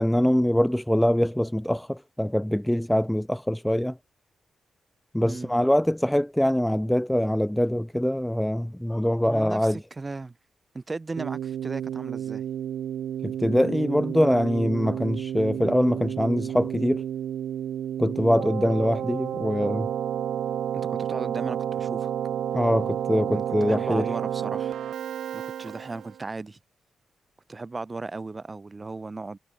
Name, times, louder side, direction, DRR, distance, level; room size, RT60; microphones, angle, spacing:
voice 1, 0.0-4.0 5.1-9.8 13.2-17.0 18.0-19.9 22.5-24.1, equal, 5° left, 1.1 m, -23 dB
voice 2, 9.3-10.4 10.7-12.4 20.7-22.1 23.3-24.8 25.3-26.6 27.5-29.4, right 3 dB, 25° right, 5.6 m, -36 dB
Keyboard (musical), 11.2-26.2, right 10 dB, 80° right, 3.0 m, -31 dB
cardioid pair, 115°, 0 cm